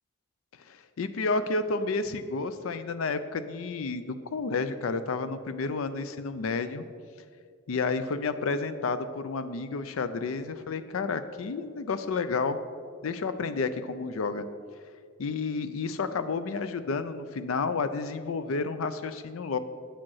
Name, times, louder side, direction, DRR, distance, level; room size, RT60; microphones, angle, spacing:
voice 1, 0.7-6.8 7.7-12.6 13.0-14.4 15.2-19.6, left 4 dB, 85° left, 12 dB, 0.5 m, -31 dB
8.6 x 5.2 x 5.6 m, 2.1 s
head